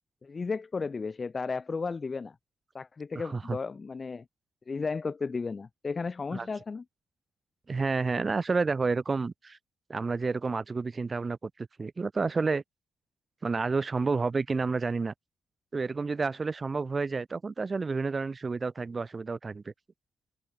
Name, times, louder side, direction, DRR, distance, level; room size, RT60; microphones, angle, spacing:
voice 1, 0.2-2.3 2.7-4.2 4.7-6.8, left 4 dB, 25° left, 1.5 m, -34 dB
voice 2, 3.2-3.6 6.3-6.5 7.7-9.6 9.9-12.6 13.4-15.1 15.7-19.7, right 4 dB, 25° right, 0.3 m, -30 dB
cardioid pair, 155°, 0 cm